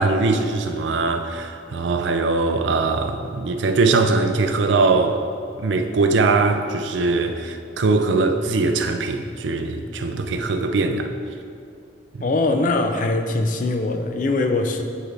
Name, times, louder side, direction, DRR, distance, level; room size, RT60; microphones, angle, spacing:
voice 1, 0.0-5.3 5.5-11.1 12.1-12.3, right 3 dB, 75° right, 7 dB, 0.4 m, -21 dB
voice 2, 12.2-14.8, left 2 dB, 45° left, 5 dB, 0.4 m, -22 dB
8.9 x 4.5 x 3.3 m, 2.4 s
head